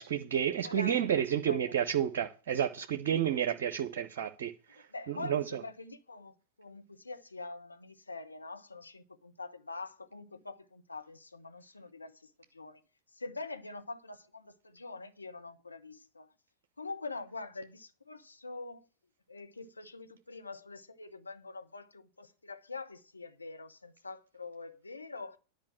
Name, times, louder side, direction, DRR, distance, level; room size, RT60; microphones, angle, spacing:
voice 1, 0.0-5.6, right 9 dB, 55° right, 0.8 m, -31 dB
voice 2, 0.6-1.7 3.3-3.5 4.8-12.8 13.1-16.3 16.8-18.9 19.3-25.4, left 3 dB, 80° left, 1.0 m, -45 dB
10.5 x 5.1 x 7.5 m
figure-of-eight pair, 90°, 0 cm